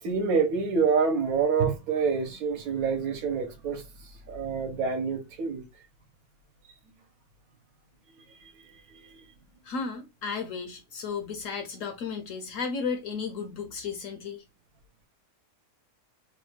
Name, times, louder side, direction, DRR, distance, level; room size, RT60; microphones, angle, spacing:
voice 1, 0.0-5.6 8.4-9.2, right 5 dB, 70° right, 1.2 m, -27 dB
voice 2, 9.6-14.4, left 5 dB, 65° left, 0.9 m, -34 dB
3.1 x 2.2 x 3.2 m
omnidirectional pair, 1.7 m